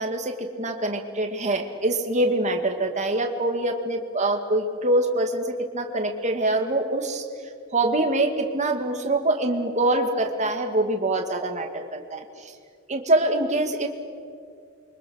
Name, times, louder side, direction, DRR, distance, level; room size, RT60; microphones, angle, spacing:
voice 1, 0.0-7.2 7.7-12.5 12.9-13.9, right 2 dB, 35° right, 4 dB, 2.3 m, -24 dB
29.5 x 24.5 x 6.5 m, 2.3 s
head